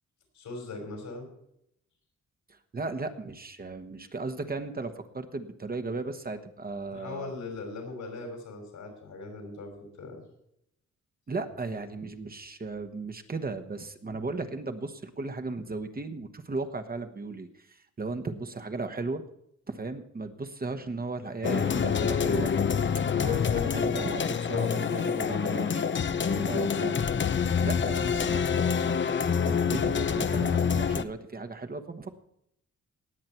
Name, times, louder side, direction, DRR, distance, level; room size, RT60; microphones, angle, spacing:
voice 1, 0.3-1.3 6.9-10.2, left 3 dB, 85° left, 2 dB, 5.7 m, -40 dB
voice 2, 2.5-7.3 11.3-19.2 19.7-22.5 23.2-25.9 26.4-27.0 27.6-32.1, right 3 dB, 30° right, 7 dB, 1.2 m, -36 dB
sound 1, 21.4-31.0, left 6 dB, 40° left, 0.7 m, -26 dB
19.0 x 7.8 x 4.4 m, 0.76 s
cardioid pair, 110°, 30 cm